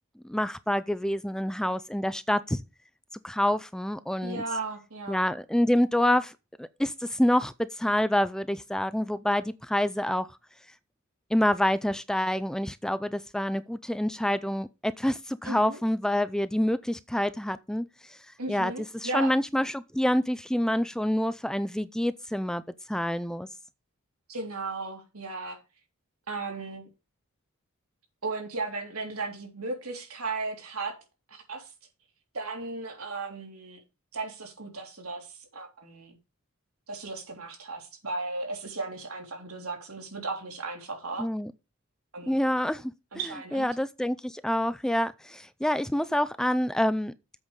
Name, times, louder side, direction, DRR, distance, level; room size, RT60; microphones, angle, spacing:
voice 1, 0.2-2.6 3.2-4.4 5.1-6.3 6.6-10.3 11.3-18.2 18.5-22.6 22.9-23.5 41.2-41.5 42.3-42.9 43.5-47.1, left 1 dB, 5° left, 0.4 m, -27 dB
voice 2, 4.2-5.2 15.4-15.8 18.4-19.3 24.3-25.6 26.3-26.9 28.2-30.9 31.3-31.7 32.3-33.8 34.1-36.2 36.9-41.3 42.1-42.3 43.1-43.7, right 3 dB, 90° right, 3.3 m, -35 dB
8.0 x 5.4 x 6.7 m
head